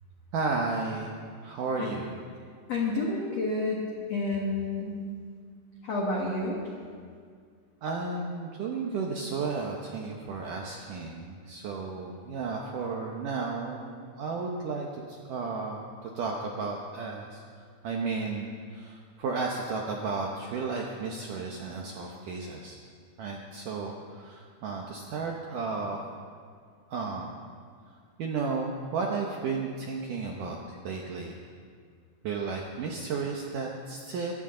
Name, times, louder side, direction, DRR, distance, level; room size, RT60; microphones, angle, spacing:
voice 1, 0.3-1.2 1.4-2.1 7.8-17.4 17.8-22.8 23.2-26.0 26.9-27.4 28.2-31.4 32.2-34.3, right 4 dB, 85° right, 0 dB, 1.8 m, -33 dB
voice 2, 2.7-5.0 5.8-6.6, left 2 dB, 60° left, -2 dB, 1.7 m, -29 dB
23.5 x 14.5 x 3.8 m, 2.1 s
omnidirectional pair, 5.3 m